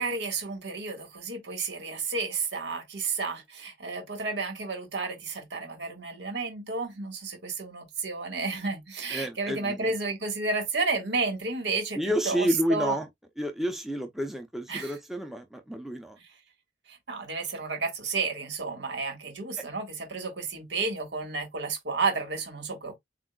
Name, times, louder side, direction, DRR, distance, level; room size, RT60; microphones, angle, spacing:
voice 1, 0.0-12.0 12.3-13.0 14.7-14.9 16.2-16.3 16.9-23.0, right 4 dB, 85° right, 1.7 m, -31 dB
voice 2, 9.1-9.9 12.0-13.1 13.4-16.2, equal, ahead, 0.6 m, -30 dB
7.4 x 2.5 x 2.3 m
head